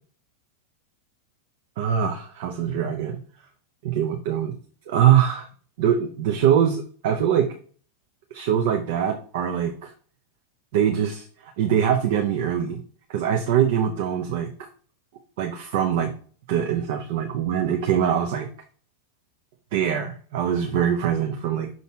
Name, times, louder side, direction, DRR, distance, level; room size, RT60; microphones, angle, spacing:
voice 1, 1.8-3.2 3.8-4.5 4.9-5.5 5.8-7.5 8.3-9.9 10.7-12.8 13.1-14.5 15.4-16.1 16.5-18.5 19.7-21.7, right 9 dB, 50° right, 4 dB, 0.8 m, -23 dB
6.0 x 4.1 x 4.4 m, 0.43 s
figure-of-eight pair, 90°, 0 cm